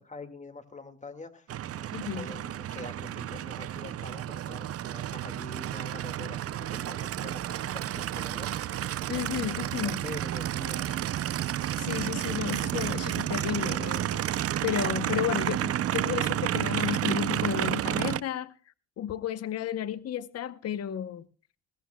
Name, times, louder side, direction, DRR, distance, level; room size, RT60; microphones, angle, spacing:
voice 1, 0.0-1.5 1.7-8.5 9.3-11.1 11.9-12.1, left 3 dB, 25° left, 2.0 m, -45 dB
Aircraft, 1.5-18.2, right 12 dB, 50° right, 0.5 m, -31 dB
voice 2, 1.9-2.3 9.1-10.0 11.8-14.3 14.6-18.5 19.0-21.2, left 10 dB, 55° left, 0.8 m, -32 dB
21.0 x 16.5 x 2.2 m
cardioid pair, 90°, 30 cm